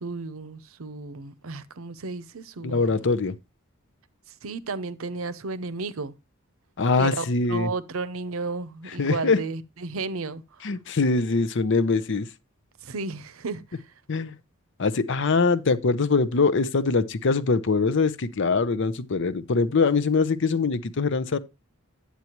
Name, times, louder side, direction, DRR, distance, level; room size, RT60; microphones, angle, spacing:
voice 1, 0.0-3.0 4.4-6.1 7.0-10.6 12.8-13.9, right 3 dB, 80° right, 0.7 m, -33 dB
voice 2, 2.6-3.3 6.8-7.7 8.9-9.4 10.6-12.3 14.1-14.4 14.8-21.4, left 4 dB, 60° left, 0.7 m, -23 dB
9.3 x 8.3 x 3.0 m
head